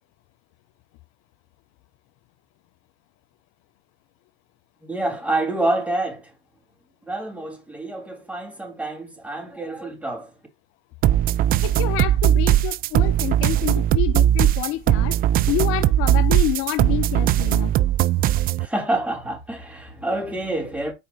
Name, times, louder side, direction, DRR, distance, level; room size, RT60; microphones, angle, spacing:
voice 1, 4.8-6.3 7.1-10.3 18.6-20.9, right 2 dB, 5° right, 3.4 m, -27 dB
sound 1, 11.0-18.7, right 12 dB, 30° right, 0.4 m, -19 dB
voice 2, 11.6-15.2 15.5-17.7, left 17 dB, 40° left, 0.6 m, -27 dB
8.4 x 4.9 x 2.9 m
hypercardioid pair, 110°, 33 cm